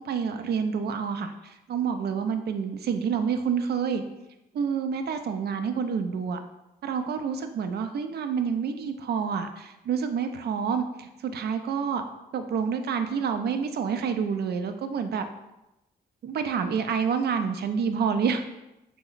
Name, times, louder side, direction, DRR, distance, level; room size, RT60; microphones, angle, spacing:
voice 1, 0.0-4.0 4.5-6.4 6.8-12.0 12.3-15.2 16.2-18.4, right 6 dB, 60° right, 8 dB, 0.4 m, -28 dB
3.2 x 2.0 x 3.8 m, 0.92 s
supercardioid pair, 60°, 19 cm